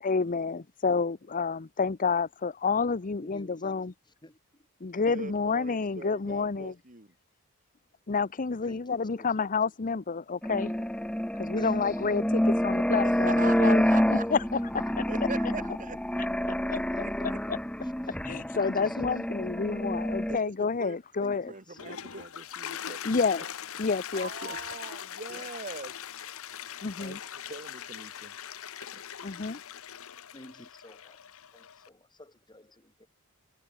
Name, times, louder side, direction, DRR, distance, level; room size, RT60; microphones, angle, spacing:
voice 1, 0.0-3.9 4.8-6.7 8.1-10.9 11.4-13.8 14.3-14.4 14.7-14.8 16.7-16.8 17.2-17.6 18.2-21.5 23.0-23.4 23.8-24.3 26.8-27.2 29.2-29.6, left 4 dB, 35° left, 0.7 m, -29 dB
voice 2, 3.0-4.7 8.6-9.5 10.4-10.5 11.4-12.0 14.8-15.0 15.3-15.4 15.9-16.0 16.3-16.4 16.7-17.3 17.8-19.8 21.2-22.2 26.3-26.6 30.0-33.1, left 1 dB, 20° left, 6.4 m, -53 dB
voice 3, 5.0-7.1 13.0-14.3 15.1-16.0 17.3-17.4 20.3-23.5 23.7-25.9 27.0-27.2 27.5-28.3 28.8-29.0, right 4 dB, 35° right, 5.7 m, -42 dB
sound 1, 10.4-20.4, equal, 5° left, 1.0 m, -28 dB
Toilet flush, 21.6-31.9, left 9 dB, 70° left, 1.0 m, -41 dB
head